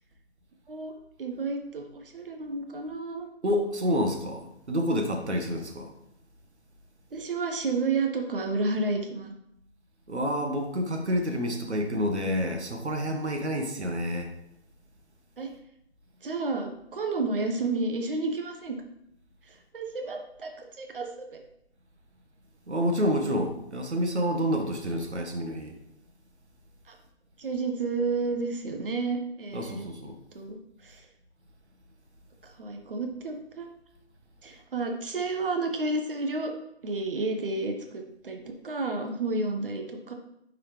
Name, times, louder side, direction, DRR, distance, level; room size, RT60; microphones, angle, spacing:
voice 1, 1.2-3.3 7.1-9.3 15.4-15.5 16.2-18.8 19.5-20.5 20.8-21.4 26.9-27.0 27.4-29.9 30.3-31.0 32.4-33.7 34.4-36.5 36.8-40.1, right 3 dB, 55° right, 3 dB, 1.2 m, -31 dB
voice 2, 3.4-5.9 10.1-14.3 22.7-25.8 29.5-30.2, equal, 80° right, 4 dB, 1.5 m, -28 dB
9.3 x 4.8 x 3.2 m, 0.77 s
figure-of-eight pair, 150°, 34 cm